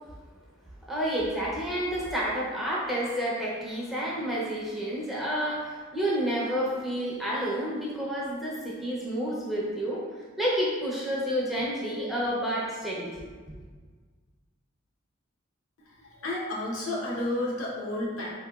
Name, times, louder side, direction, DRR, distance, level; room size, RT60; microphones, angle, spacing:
voice 1, 0.9-13.3 13.5-13.6, equal, ahead, -7 dB, 0.5 m, -30 dB
voice 2, 15.8-18.3, left 1 dB, 85° left, -4 dB, 0.8 m, -31 dB
3.7 x 2.8 x 2.3 m, 1.5 s
head